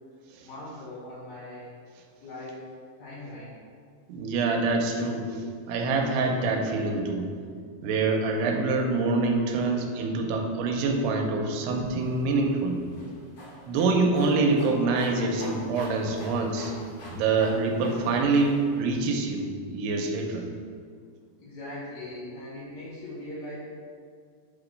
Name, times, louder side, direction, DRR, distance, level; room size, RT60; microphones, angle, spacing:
voice 1, 0.4-1.7 2.2-2.6 3.0-3.5 21.4-23.6, left 1 dB, 75° left, -10 dB, 4.0 m, -40 dB
voice 2, 4.1-5.3 5.7-7.3 7.8-12.8 13.7-16.7 17.1-20.4, right 3 dB, 85° right, 2 dB, 2.8 m, -25 dB
sound 1, 11.7-19.0, left 1 dB, 55° left, 2.0 m, -44 dB
8.5 x 3.0 x 6.3 m, 2.1 s
omnidirectional pair, 4.8 m